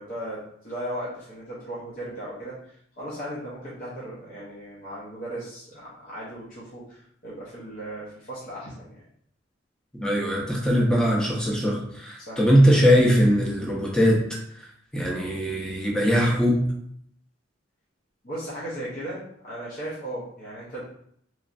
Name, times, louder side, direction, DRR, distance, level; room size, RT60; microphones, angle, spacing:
voice 1, 0.0-9.0 12.3-12.4 18.2-20.8, right 1 dB, 45° left, -8 dB, 0.7 m, -36 dB
voice 2, 10.0-14.2 14.9-16.7, equal, 5° left, -3 dB, 0.6 m, -21 dB
3.1 x 2.4 x 2.5 m, 0.68 s
head